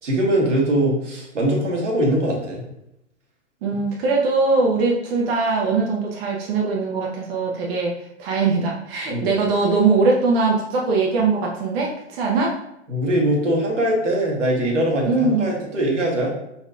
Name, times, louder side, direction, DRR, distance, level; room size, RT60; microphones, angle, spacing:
voice 1, 0.0-2.6 9.1-9.3 12.9-16.3, right 1 dB, 80° right, -1 dB, 1.5 m, -21 dB
voice 2, 3.6-12.6 15.1-15.5, right 3 dB, 55° right, -2 dB, 1.0 m, -21 dB
5.0 x 4.2 x 2.4 m, 0.83 s
hypercardioid pair, 105°, 36 cm